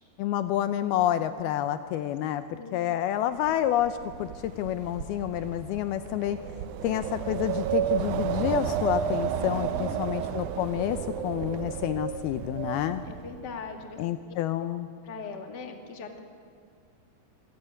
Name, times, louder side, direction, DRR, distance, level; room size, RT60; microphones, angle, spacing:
voice 1, 0.2-6.4 6.8-11.0 11.2-13.0 14.0-14.9, left 12 dB, 80° left, 10 dB, 2.5 m, -29 dB
Wind, 3.5-13.6, right 9 dB, 90° right, 1.7 m, -32 dB
voice 2, 9.4-10.0 13.0-14.0 15.0-16.2, left 5 dB, 35° left, 4 dB, 2.0 m, -40 dB
26.0 x 16.0 x 9.8 m, 2.2 s
omnidirectional pair, 4.7 m